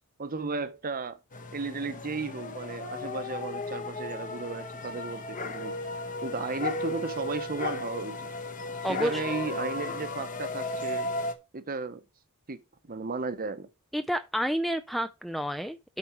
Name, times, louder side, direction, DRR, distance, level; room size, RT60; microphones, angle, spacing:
voice 1, 0.2-1.2 1.5-5.8 6.2-8.3 8.9-11.1 11.5-12.0 12.5-12.6 12.9-13.7, right 4 dB, 40° right, 0.8 m, -34 dB
sound 1, 1.3-11.3, left 2 dB, 35° left, 1.0 m, -35 dB
voice 2, 8.8-9.4 13.9-16.0, equal, ahead, 0.3 m, -30 dB
8.3 x 4.2 x 5.8 m
head